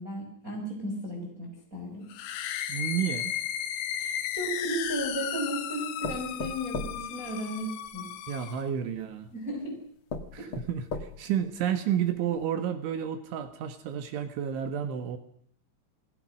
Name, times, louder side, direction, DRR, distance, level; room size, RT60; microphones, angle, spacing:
voice 1, 0.0-2.1 4.0-8.1 9.3-9.8 10.4-10.5, right 1 dB, 15° right, 0 dB, 5.9 m, -35 dB
sound 1, 2.1-8.7, left 10 dB, 75° left, 3.7 m, -35 dB
voice 2, 2.7-3.3 8.3-9.3 10.3-15.2, right 9 dB, 75° right, 9 dB, 3.9 m, -31 dB
sound 2, 4.4-5.3 6.0-8.0 9.0-9.1 9.6-9.7 10.1-11.4 11.9-12.0 12.4-12.5, left 4 dB, 60° left, 1.3 m, -38 dB
28.5 x 20.5 x 6.4 m, 0.63 s
omnidirectional pair, 5.5 m